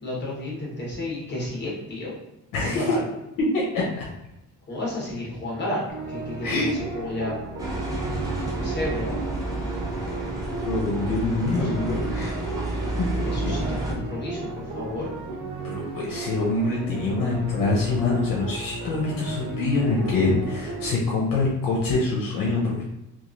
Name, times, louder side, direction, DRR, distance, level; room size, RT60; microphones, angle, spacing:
voice 1, 0.0-2.2 2.6-3.0 4.7-7.4 8.5-9.2 11.6-11.7 13.2-15.1, left 1 dB, 35° left, -5 dB, 1.2 m, -32 dB
voice 2, 2.5-2.9 3.5-4.1 6.4-6.7 10.6-12.3 13.0-13.1 13.4-13.5 15.6-22.8, left 3 dB, 80° left, -3 dB, 0.7 m, -25 dB
sound 1, 5.9-20.9, right 2 dB, 90° right, 0.7 m, -35 dB
sound 2, 7.6-13.9, right 2 dB, 10° right, 0.6 m, -30 dB
3.0 x 2.4 x 2.5 m, 0.93 s
cardioid pair, 125°, 33 cm